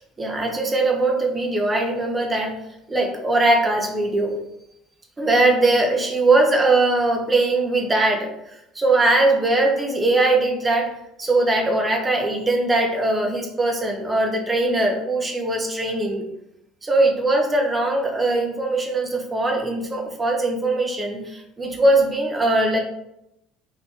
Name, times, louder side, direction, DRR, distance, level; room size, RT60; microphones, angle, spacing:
voice 1, 0.2-2.5 2.9-4.3 5.2-8.3 8.7-10.9 11.2-16.3 16.8-22.8, right 2 dB, 20° right, 2 dB, 0.6 m, -20 dB
3.5 x 2.5 x 2.8 m, 0.82 s
figure-of-eight pair, 60°, 0 cm